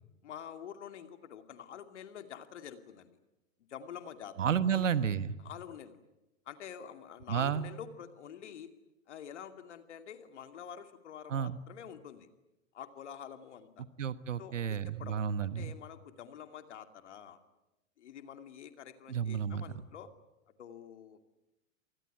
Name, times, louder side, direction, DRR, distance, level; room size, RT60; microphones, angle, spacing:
voice 1, 0.2-3.1 3.7-4.9 5.4-6.0 6.5-8.7 9.1-12.3 12.7-13.8 14.4-17.4 18.0-20.1 20.6-21.2, left 8 dB, 60° left, 9 dB, 2.6 m, -47 dB
voice 2, 4.4-5.4 7.3-7.7 11.3-11.6 14.0-15.7 19.1-19.6, right 8 dB, 70° right, 16 dB, 1.4 m, -31 dB
27.5 x 20.0 x 9.6 m, 0.98 s
figure-of-eight pair, 100°, 39 cm